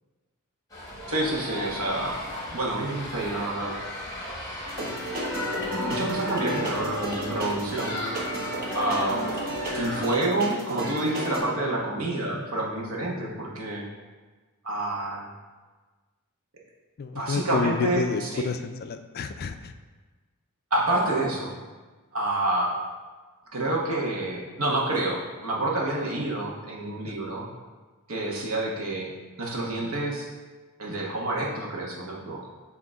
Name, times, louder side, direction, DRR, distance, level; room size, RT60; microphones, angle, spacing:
sound 1, 0.7-10.2, left 1 dB, 15° left, 1.3 m, -36 dB
voice 1, 1.1-2.1 2.5-3.7 5.6-8.0 8.7-9.2 9.7-13.8 14.6-15.3 17.1-18.4 20.7-21.5 22.1-22.7 23.5-27.5 28.1-29.1 29.4-30.3 30.8-32.5, right 2 dB, 65° right, -3 dB, 1.2 m, -28 dB
sound 2, 4.6-11.4, right 1 dB, 40° right, 1.1 m, -32 dB
voice 2, 17.0-19.7, left 5 dB, 45° left, 8 dB, 0.3 m, -29 dB
7.7 x 2.9 x 4.8 m, 1.3 s
head